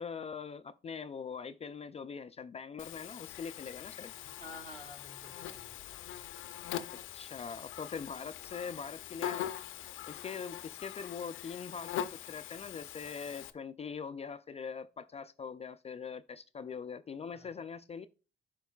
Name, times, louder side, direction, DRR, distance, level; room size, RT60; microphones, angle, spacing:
voice 1, 0.0-4.1 7.1-9.5 10.1-18.1, left 6 dB, 30° left, 0.4 m, -42 dB
Buzz, 2.8-13.5, left 11 dB, 85° left, 0.6 m, -42 dB
voice 2, 4.2-6.0 17.3-17.6, left 1 dB, 40° right, 2.9 m, -51 dB
11.5 x 4.6 x 2.3 m
cardioid pair, 90°, 20 cm